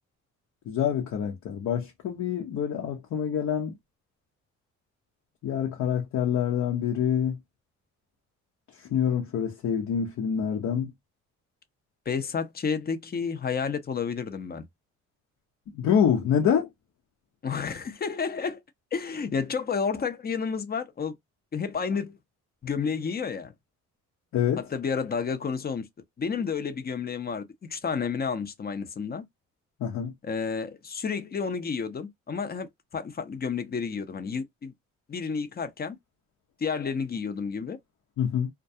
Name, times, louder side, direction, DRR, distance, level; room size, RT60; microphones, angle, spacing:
voice 1, 0.7-3.7 5.4-7.4 8.9-10.9 15.7-16.7 24.3-24.6 29.8-30.1 38.2-38.5, left 8 dB, 65° left, 0.8 m, -26 dB
voice 2, 12.1-14.6 17.4-18.6 18.9-21.2 21.5-22.2 22.6-23.5 24.6-25.9 26.2-29.2 30.2-34.7 35.1-36.0 36.6-37.8, left 5 dB, 30° left, 0.6 m, -31 dB
2.3 x 2.2 x 2.6 m
cardioid pair, 90°, 30 cm